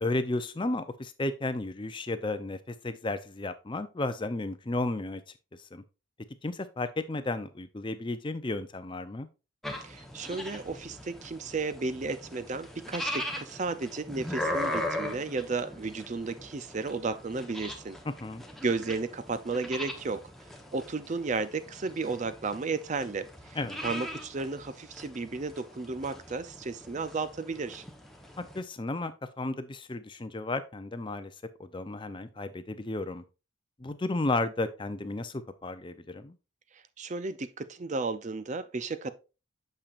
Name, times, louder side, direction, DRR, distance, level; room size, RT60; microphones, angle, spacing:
voice 1, 0.0-5.2 5.7-5.8 6.4-9.3 18.2-18.4 23.6-23.8 28.4-29.1 29.4-31.3 31.6-33.2 33.8-36.3, left 2 dB, 25° left, 0.5 m, -33 dB
sound 1, 9.6-28.6, left 1 dB, ahead, 0.9 m, -40 dB
voice 2, 9.8-18.0 18.6-20.2 20.7-27.8 36.7-39.1, right 3 dB, 35° right, 0.4 m, -33 dB
8.8 x 6.8 x 2.5 m
head